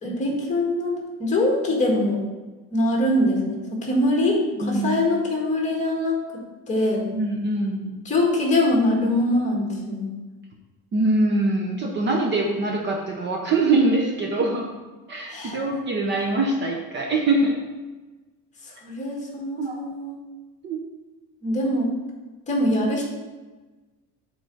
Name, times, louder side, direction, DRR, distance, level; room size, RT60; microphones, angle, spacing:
voice 1, 0.0-2.2 2.7-6.2 6.7-7.0 8.1-10.1 15.3-15.6 18.8-20.2 21.4-21.9 22.5-23.1, left 1 dB, 20° left, -1 dB, 1.8 m, -23 dB
voice 2, 7.1-7.9 10.9-14.7 15.1-17.6 19.6-19.8 20.6-20.8, right 2 dB, 30° right, 0 dB, 0.8 m, -23 dB
8.5 x 3.9 x 6.4 m, 1.2 s
cardioid pair, 180°, 36 cm